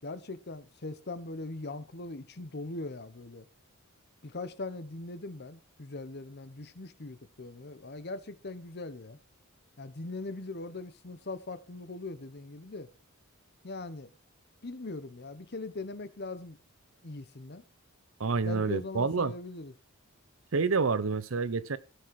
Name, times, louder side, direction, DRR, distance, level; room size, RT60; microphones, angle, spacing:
voice 1, 0.0-3.4 4.2-9.2 9.8-12.9 13.6-14.1 14.6-16.6 17.0-17.6 18.4-19.7, left 3 dB, 50° left, 0.9 m, -40 dB
voice 2, 18.2-19.3 20.5-21.8, right 4 dB, 70° right, 0.7 m, -28 dB
16.0 x 6.3 x 4.7 m
head